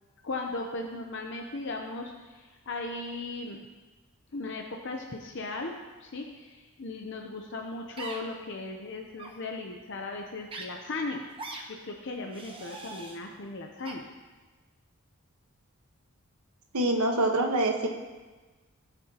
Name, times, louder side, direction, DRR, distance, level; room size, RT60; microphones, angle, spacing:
voice 1, 0.2-3.6 4.3-11.3 11.7-14.1, left 2 dB, 55° left, 2 dB, 0.7 m, -37 dB
sound 1, 8.0-8.2 9.1-9.3 10.5-10.6 11.4-11.6 12.3-13.2 13.8-13.9, right 2 dB, 25° right, 1.0 m, -41 dB
voice 2, 16.7-17.9, right 1 dB, 90° right, 2 dB, 1.3 m, -25 dB
16.5 x 7.0 x 2.9 m, 1.3 s
head